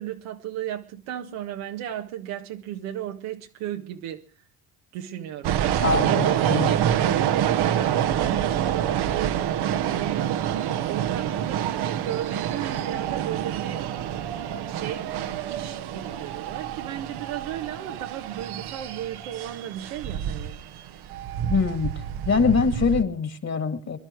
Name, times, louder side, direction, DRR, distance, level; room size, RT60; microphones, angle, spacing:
voice 1, 0.0-4.2 4.9-9.5 9.9-10.3 10.9-13.8 14.7-20.6, right 11 dB, 90° right, 1.6 m, -35 dB
sound 1, 5.4-23.0, right 10 dB, 60° right, 1.1 m, -27 dB
voice 2, 5.8-6.7 21.5-21.9 22.2-24.0, left 5 dB, 35° left, 2.4 m, -23 dB
23.5 x 11.0 x 4.6 m
supercardioid pair, 80°, 44 cm